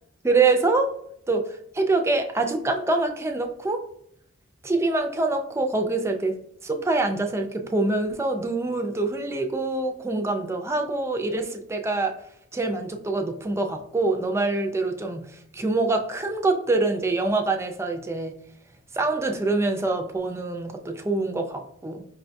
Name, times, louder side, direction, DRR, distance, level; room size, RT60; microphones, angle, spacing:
voice 1, 0.2-0.9 1.3-1.5 1.7-3.8 4.6-6.4 6.6-12.2 12.5-18.4 18.9-22.1, right 3 dB, 15° right, 4 dB, 0.3 m, -25 dB
5.0 x 2.2 x 2.5 m, 0.71 s
head